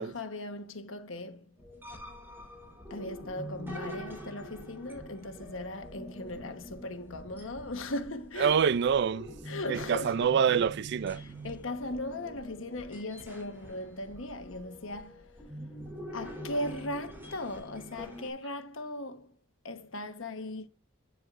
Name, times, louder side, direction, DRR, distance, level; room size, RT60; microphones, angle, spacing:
voice 1, 0.0-1.5 2.9-8.6 9.5-10.2 11.2-15.2 16.1-19.3 19.6-20.7, left 1 dB, 75° left, 1.2 m, -38 dB
sound 1, 1.6-18.3, equal, 10° right, 3.5 m, -45 dB
voice 2, 8.4-9.3 9.7-11.5, right 7 dB, 60° right, 0.4 m, -26 dB
9.4 x 7.8 x 2.5 m
head